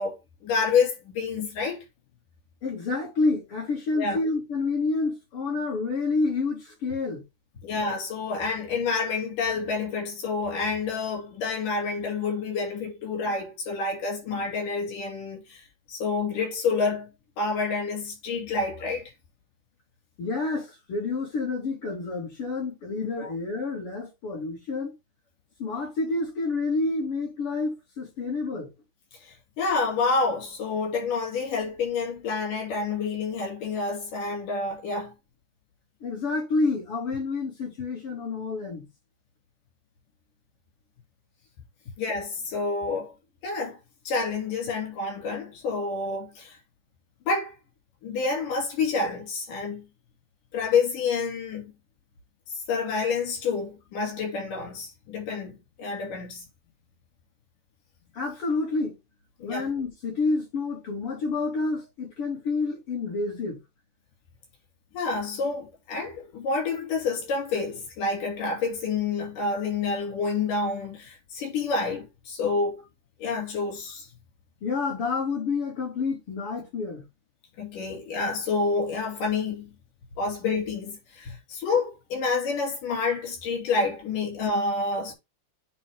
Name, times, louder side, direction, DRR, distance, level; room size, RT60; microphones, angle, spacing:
voice 1, 0.0-1.8 4.0-4.2 7.6-15.6 15.9-17.1 17.4-19.1 23.2-23.3 29.3-35.1 42.0-43.1 43.4-43.8 44.1-46.6 47.3-47.5 48.0-49.9 50.5-51.7 52.7-56.5 59.4-59.7 64.9-72.8 73.2-74.1 77.6-79.7 80.2-85.1, left 4 dB, 85° left, 4.2 m, -28 dB
voice 2, 2.6-7.2 20.2-24.9 25.6-28.7 36.0-38.9 58.1-58.9 59.4-63.6 74.6-77.1, left 3 dB, 45° left, 3.8 m, -29 dB
8.7 x 3.7 x 3.5 m
omnidirectional pair, 3.6 m